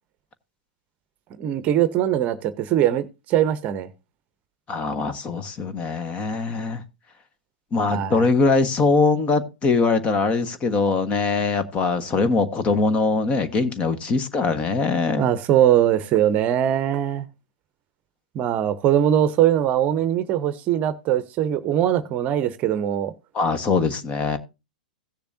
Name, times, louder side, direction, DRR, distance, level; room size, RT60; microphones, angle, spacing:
voice 1, 1.4-3.9 7.9-8.3 15.2-17.3 18.3-23.1, right 11 dB, 35° right, 0.8 m, -21 dB
voice 2, 4.7-6.8 7.7-15.3 23.3-24.4, left 4 dB, 25° left, 1.3 m, -22 dB
16.5 x 6.8 x 2.7 m
figure-of-eight pair, 105°, 5 cm